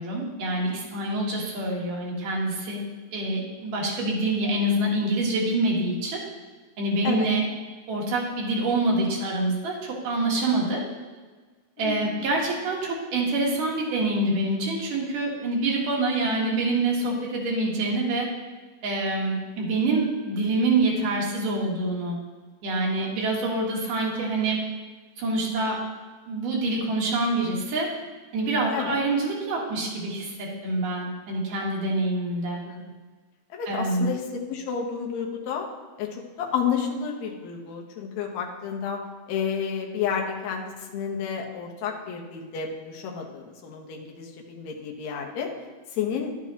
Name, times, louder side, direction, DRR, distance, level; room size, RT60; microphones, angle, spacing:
voice 1, 0.0-2.8 3.1-6.2 6.8-7.4 7.9-10.8 11.8-18.3 18.8-22.2 22.6-24.6 25.2-25.8 26.3-27.9 28.3-32.6 33.7-34.1, right 2 dB, 85° right, -2 dB, 3.1 m, -26 dB
voice 2, 11.8-12.3 28.7-29.0 32.6-32.9 33.5-35.7 36.0-39.0 39.3-45.5 45.9-46.3, left 7 dB, 65° left, 1 dB, 2.1 m, -31 dB
11.5 x 7.3 x 2.9 m, 1.4 s
omnidirectional pair, 3.7 m